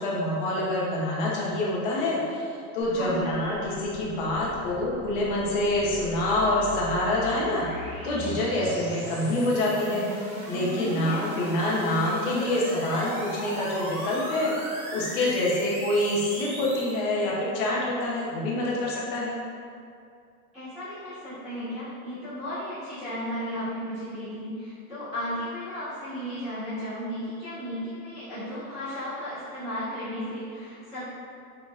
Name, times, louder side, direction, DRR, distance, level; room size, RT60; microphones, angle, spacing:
voice 1, 0.0-7.6 8.0-10.0 10.5-14.5 14.9-19.4, left 1 dB, 35° left, -4 dB, 0.6 m, -26 dB
sound 1, 2.8-17.0, equal, 20° right, 0.8 m, -38 dB
voice 2, 2.9-3.2 10.8-11.2 20.5-31.2, equal, ahead, -23 dB, 1.2 m, -34 dB
5.1 x 2.8 x 2.3 m, 2.3 s
supercardioid pair, 175°, 46 cm